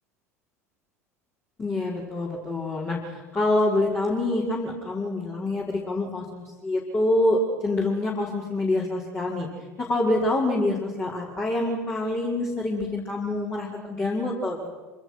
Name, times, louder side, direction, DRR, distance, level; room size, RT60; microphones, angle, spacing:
voice 1, 1.6-9.5 9.8-14.7, left 2 dB, 25° left, -4 dB, 5.7 m, -26 dB
27.0 x 27.0 x 6.4 m, 1.4 s
figure-of-eight pair, 70°, 8 cm